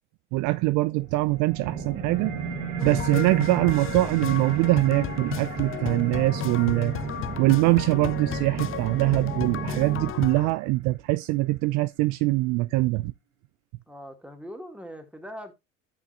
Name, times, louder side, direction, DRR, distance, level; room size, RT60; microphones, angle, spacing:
voice 1, 0.3-2.4 2.8-6.9 7.4-13.1, right 20 dB, 55° right, 0.4 m, -23 dB
sound 1, 1.0-12.0, right 5 dB, 90° right, 1.5 m, -40 dB
sound 2, 1.7-10.1, right 5 dB, 30° right, 1.1 m, -35 dB
sound 3, 2.8-10.5, left 12 dB, 35° left, 0.6 m, -34 dB
voice 2, 13.9-15.5, equal, 5° right, 2.2 m, -41 dB
13.5 x 6.0 x 2.5 m
hypercardioid pair, 65°, 37 cm